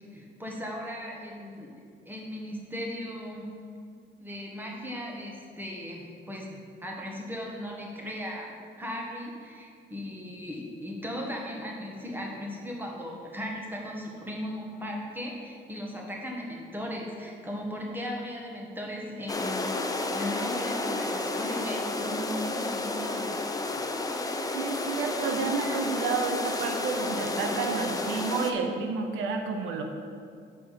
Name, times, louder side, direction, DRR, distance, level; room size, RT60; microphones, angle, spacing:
voice 1, 0.1-1.7 2.0-3.5 4.2-23.5, equal, 10° right, -1 dB, 1.5 m, -37 dB
sound 1, 19.3-28.5, left 2 dB, 20° left, 0.6 m, -31 dB
voice 2, 24.5-29.8, right 4 dB, 90° right, 4 dB, 0.7 m, -30 dB
6.7 x 4.6 x 5.9 m, 2.3 s
cardioid pair, 90°, 20 cm